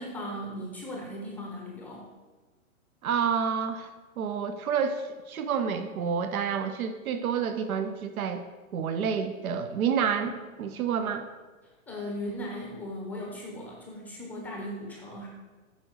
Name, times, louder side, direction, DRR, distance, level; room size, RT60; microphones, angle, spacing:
voice 1, 0.0-2.1 10.2-10.3 11.9-15.3, equal, 5° left, -1 dB, 0.6 m, -37 dB
voice 2, 3.0-3.9 4.2-8.4 8.7-11.3, right 7 dB, 80° right, 8 dB, 0.9 m, -29 dB
8.5 x 5.2 x 6.3 m, 1.3 s
hypercardioid pair, 160°, 42 cm